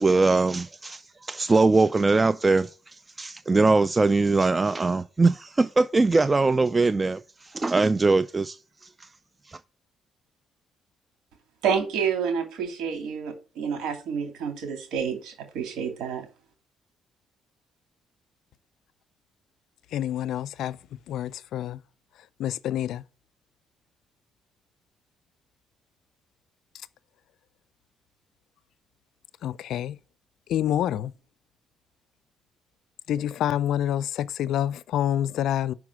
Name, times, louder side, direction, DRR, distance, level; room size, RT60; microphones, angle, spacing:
voice 1, 0.0-8.6 9.0-9.1 9.5-9.6, right 3 dB, 25° right, 0.3 m, -22 dB
voice 2, 11.6-16.2, right 7 dB, 85° right, 2.6 m, -29 dB
voice 3, 19.9-20.8 21.1-21.8 22.4-23.0 29.4-30.0 30.5-31.1 33.1-35.7, left 11 dB, 75° left, 0.4 m, -27 dB
5.9 x 4.7 x 6.1 m
cardioid pair, 90°, 0 cm